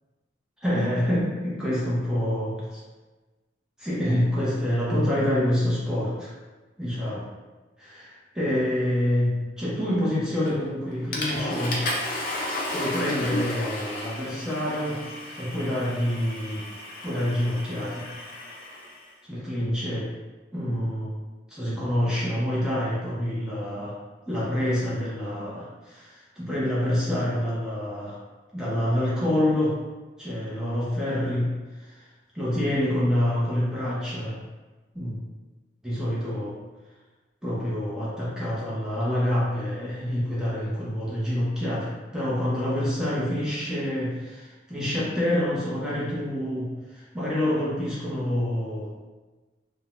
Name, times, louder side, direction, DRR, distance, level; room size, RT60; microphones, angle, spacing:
voice 1, 0.6-2.8 3.8-6.3 6.8-7.3 7.8-11.9 12.7-15.0 15.4-16.6 17.0-18.1 19.3-20.1 20.5-21.2 21.5-23.9 24.3-28.2 28.5-29.8 30.2-31.5 32.3-34.4 34.9-35.2 35.8-36.6 37.4-48.9, left 1 dB, 5° right, -8 dB, 0.6 m, -27 dB
Water / Toilet flush, 10.5-10.7 11.1-19.0, left 1 dB, 45° left, 0.4 m, -33 dB
2.6 x 2.1 x 2.9 m, 1.2 s
head